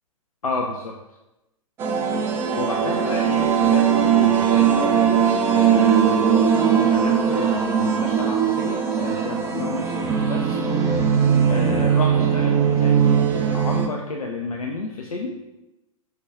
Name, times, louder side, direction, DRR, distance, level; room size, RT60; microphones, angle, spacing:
voice 1, 0.4-0.9 2.5-10.9 11.5-15.4, left 3 dB, 75° left, 1 dB, 0.5 m, -31 dB
sound 1, 1.8-13.9, right 7 dB, 15° right, 0.3 m, -19 dB
4.9 x 2.2 x 4.5 m, 0.98 s
figure-of-eight pair, 105°, 18 cm